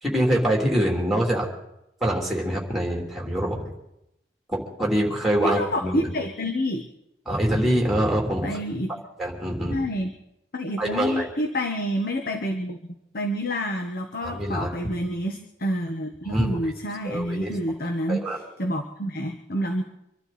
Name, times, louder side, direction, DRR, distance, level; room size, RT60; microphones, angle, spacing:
voice 1, 0.0-1.5 2.0-3.7 4.5-6.1 7.3-8.5 9.2-9.8 10.8-11.3 14.2-14.9 16.3-16.7 17.0-17.5 18.1-18.4, right 1 dB, ahead, -1 dB, 3.4 m, -25 dB
voice 2, 5.4-6.8 8.4-8.9 9.7-10.1 10.5-12.8 13.1-19.8, equal, 55° left, 4 dB, 1.3 m, -28 dB
25.5 x 12.0 x 4.3 m, 0.84 s
head